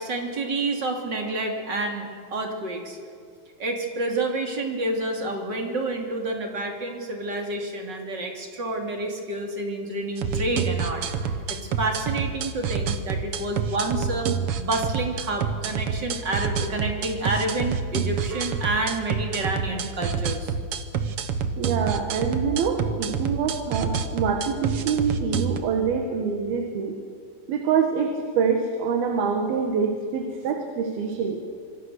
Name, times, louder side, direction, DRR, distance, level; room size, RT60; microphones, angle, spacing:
voice 1, 0.0-3.0 3.6-11.1 11.5-14.3 14.5-20.5, right 2 dB, 30° right, 2 dB, 2.9 m, -29 dB
sound 1, 10.2-25.6, right 6 dB, 65° right, 1.4 m, -28 dB
voice 2, 21.6-27.0 27.5-31.4, right 6 dB, 85° right, 4 dB, 3.5 m, -25 dB
26.5 x 21.0 x 6.7 m, 2.2 s
omnidirectional pair, 4.2 m